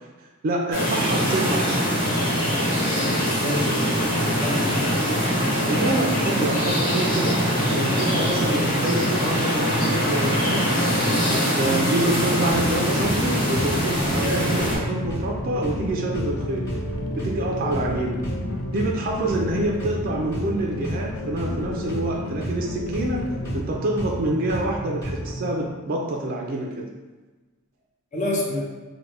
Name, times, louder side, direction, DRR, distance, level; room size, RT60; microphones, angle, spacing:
voice 1, 0.4-1.8 5.7-10.7 11.3-16.7 17.1-18.2 18.7-23.3 23.5-26.9, right 2 dB, 40° right, 0 dB, 0.3 m, -27 dB
sound 1, 0.7-14.8, equal, 60° left, 1.3 m, -23 dB
voice 2, 3.2-5.0 28.1-28.6, left 1 dB, 35° left, -3 dB, 0.6 m, -29 dB
sound 2, 12.2-25.5, right 1 dB, 15° left, 1.4 m, -32 dB
sound 3, 13.9-23.6, left 3 dB, 80° left, 0.4 m, -33 dB
3.4 x 2.1 x 3.1 m, 1.2 s
head